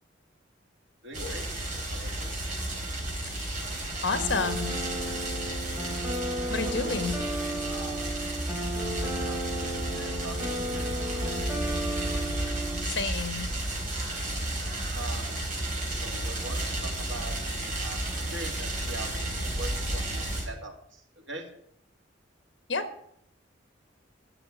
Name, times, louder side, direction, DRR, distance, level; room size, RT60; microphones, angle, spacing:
voice 1, 1.0-1.4 1.9-2.3 6.6-7.1 7.6-8.2 9.0-11.5 14.9-15.3 16.0-18.0 18.3-21.0 21.3-21.4, right 2 dB, 80° right, 2 dB, 2.7 m, -42 dB
sound 1, 1.1-20.4, right 1 dB, 45° right, 3.9 m, -32 dB
voice 2, 4.0-4.8 6.5-7.2 12.8-13.5 22.7-22.8, left 4 dB, 70° left, 10 dB, 1.5 m, -30 dB
sound 2, 4.1-12.8, right 1 dB, 10° right, 3.1 m, -34 dB
11.0 x 6.6 x 8.3 m, 0.70 s
head